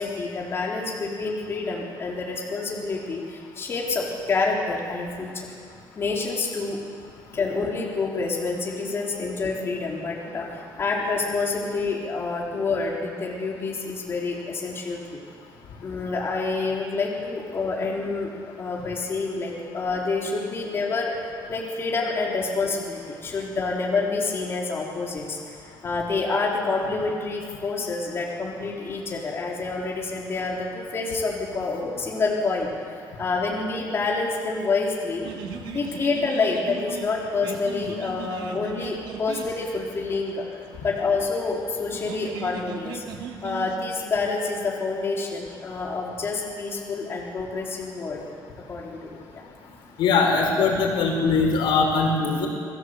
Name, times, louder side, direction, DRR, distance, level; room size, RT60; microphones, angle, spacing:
voice 1, 0.0-5.5 6.0-6.8 7.3-15.2 15.8-18.3 18.6-35.3 35.7-40.4 40.8-43.0 43.4-48.2 48.7-49.4 50.5-50.6, left 3 dB, 30° left, -3 dB, 3.9 m, -28 dB
sound 1, 35.2-43.8, right 7 dB, 75° right, 2.2 m, -39 dB
voice 2, 50.0-52.5, left 4 dB, 85° left, 1 dB, 5.4 m, -21 dB
29.0 x 20.0 x 8.1 m, 2.2 s
cardioid pair, 170°, 8 cm